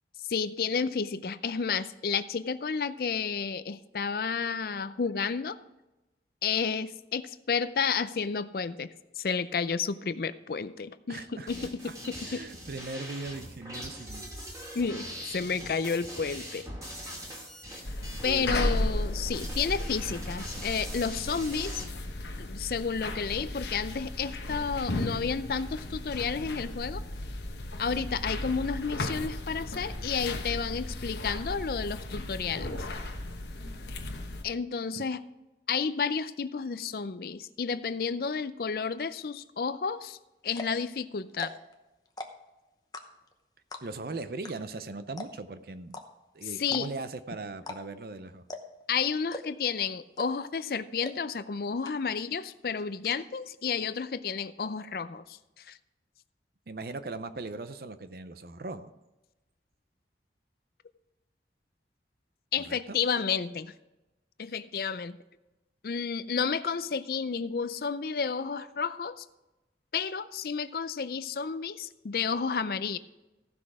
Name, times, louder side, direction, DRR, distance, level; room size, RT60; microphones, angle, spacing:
voice 1, 0.3-5.6 6.4-8.9 9.2-12.4 14.7-16.6 18.2-21.8 22.4-27.0 27.8-32.7 34.4-35.2 35.7-40.2 40.4-41.5 46.4-46.9 48.9-55.8 62.5-63.7 64.4-65.2 65.8-69.3 69.9-73.0, left 5 dB, 55° left, 14 dB, 0.4 m, -31 dB
voice 2, 11.1-11.5 11.8-11.9 12.2-14.3 18.2-19.0 20.2-20.4 34.9-35.0 43.8-46.0 46.3-48.4 56.7-58.9 62.6-63.0, right 3 dB, 55° right, 12 dB, 0.6 m, -39 dB
sound 1, 11.5-21.8, equal, 20° right, 2.4 m, -42 dB
sound 2, 17.8-34.4, left 1 dB, 75° left, 1.2 m, -35 dB
sound 3, 40.0-40.1 40.5-40.8 41.3-41.7 42.1-42.5 42.9-43.3 43.7-44.1 44.4-44.5 44.8-44.9 45.2-45.5 45.9-46.0 46.6-47.1 47.6-48.1 48.5-48.8 49.3-49.7 50.2-50.5 51.0-51.1 51.5-51.6 51.8-52.3 52.5-53.2, left 2 dB, 20° left, 0.8 m, -40 dB
15.0 x 6.1 x 4.9 m, 1.0 s
head